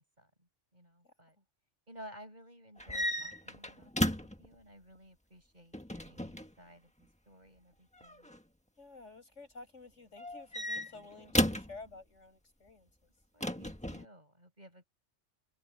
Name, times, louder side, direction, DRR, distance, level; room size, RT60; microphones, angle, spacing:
voice 1, 0.0-1.4 1.9-4.1 4.4-8.3 13.3-14.8, equal, 35° right, 8.2 m, -55 dB
voice 2, 1.0-1.4 8.8-13.1, left 3 dB, 80° left, 7.7 m, -52 dB
sound 1, 2.8-4.5 5.7-6.5 8.0-8.4 10.2-11.8 13.4-14.0, left 1 dB, 5° left, 1.5 m, -33 dB
omnidirectional pair, 1.2 m